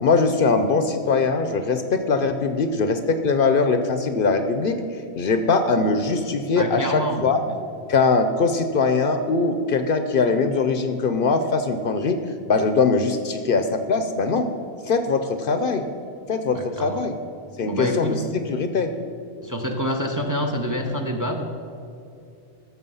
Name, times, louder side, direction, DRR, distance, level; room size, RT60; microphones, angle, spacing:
voice 1, 0.0-4.8 5.2-7.4 7.9-12.2 12.5-14.5 14.8-15.9 16.3-17.1 17.6-18.9, left 4 dB, 60° left, 8 dB, 0.8 m, -21 dB
voice 2, 6.6-7.5 16.5-17.0 17.6-18.2 19.4-21.4, equal, 20° right, 4 dB, 0.7 m, -27 dB
14.0 x 6.4 x 5.5 m, 2.4 s
omnidirectional pair, 1.1 m